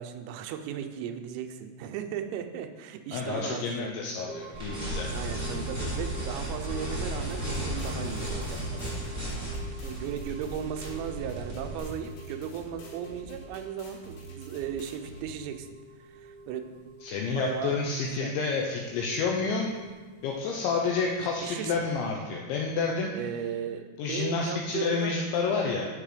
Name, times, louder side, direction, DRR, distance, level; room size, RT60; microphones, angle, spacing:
voice 1, 0.0-3.9 5.1-8.9 9.8-15.7 16.0-16.8 17.3-18.3 21.4-21.8 23.1-25.2, right 9 dB, 85° right, 7 dB, 3.4 m, -36 dB
voice 2, 3.1-5.1 17.0-19.7 20.2-23.1 24.0-25.9, left 4 dB, 85° left, 0 dB, 2.6 m, -29 dB
sound 1, 4.2-22.0, right 2 dB, 50° left, 1.8 m, -48 dB
sound 2, 4.5-11.8, equal, 10° left, 1.0 m, -34 dB
sound 3, 7.3-15.3, right 1 dB, 65° left, 3.3 m, -47 dB
11.0 x 4.7 x 5.0 m, 1.4 s
omnidirectional pair, 5.9 m